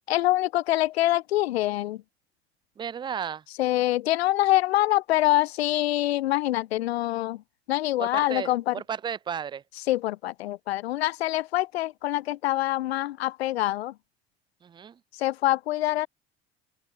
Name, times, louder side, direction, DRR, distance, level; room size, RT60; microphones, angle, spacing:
voice 1, 0.1-2.0 3.6-7.4 7.7-8.8 9.9-13.9 15.1-16.1, left 15 dB, 75° left, 0.6 m, -25 dB
voice 2, 2.8-3.4 8.0-9.6 14.6-14.9, right 7 dB, 15° right, 0.3 m, -34 dB
open air
figure-of-eight pair, 60°, 31 cm